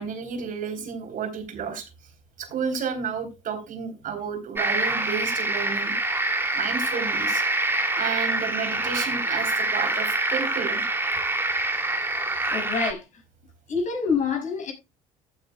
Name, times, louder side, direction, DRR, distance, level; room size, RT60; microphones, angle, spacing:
voice 1, 0.0-1.9 2.4-5.9 6.5-7.4 8.0-10.8, right 6 dB, 50° right, 3.6 m, -31 dB
sound 1, 4.6-12.9, right 2 dB, 15° right, 2.6 m, -26 dB
voice 2, 12.5-13.0 13.7-14.7, left 5 dB, 45° left, 6.6 m, -26 dB
15.5 x 8.8 x 2.3 m
hypercardioid pair, 65°, 18 cm